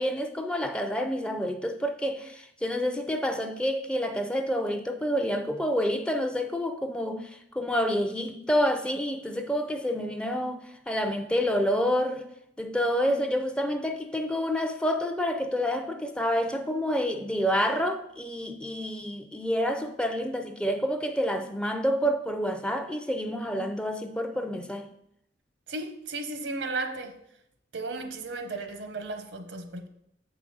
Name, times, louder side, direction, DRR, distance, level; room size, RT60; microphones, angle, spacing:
voice 1, 0.0-12.3 12.6-24.9, equal, 5° left, 0.4 m, -28 dB
voice 2, 25.7-27.2 27.7-29.9, right 3 dB, 80° right, 0.9 m, -35 dB
7.5 x 4.9 x 5.4 m
head